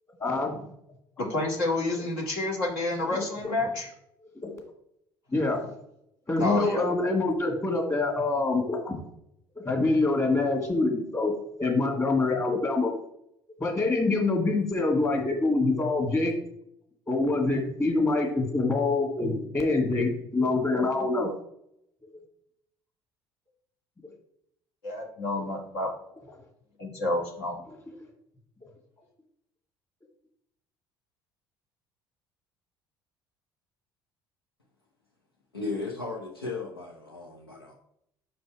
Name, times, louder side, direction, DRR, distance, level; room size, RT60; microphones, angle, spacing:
voice 1, 0.2-0.7 3.4-3.5 4.4-4.6 5.3-5.7 6.3-9.0 9.6-11.3 11.6-12.9 13.6-16.3 17.1-21.3, left 3 dB, 25° left, 1 dB, 2.3 m, -25 dB
voice 2, 1.2-3.9 6.4-6.9 24.8-25.9 26.8-27.6, left 2 dB, 65° left, -1 dB, 1.9 m, -29 dB
voice 3, 35.5-37.7, left 3 dB, 90° left, -1 dB, 0.8 m, -35 dB
5.6 x 5.3 x 4.6 m, 0.74 s
figure-of-eight pair, 55°, 12 cm